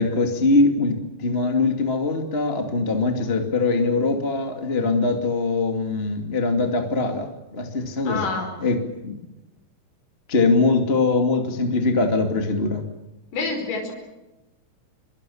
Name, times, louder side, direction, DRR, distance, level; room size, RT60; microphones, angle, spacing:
voice 1, 0.0-8.3 8.6-9.2 10.3-12.8, left 3 dB, 20° left, 5 dB, 1.7 m, -22 dB
voice 2, 8.0-8.5 13.3-13.9, left 3 dB, 50° left, 2 dB, 6.3 m, -27 dB
25.5 x 23.5 x 7.1 m, 1.0 s
omnidirectional pair, 5.0 m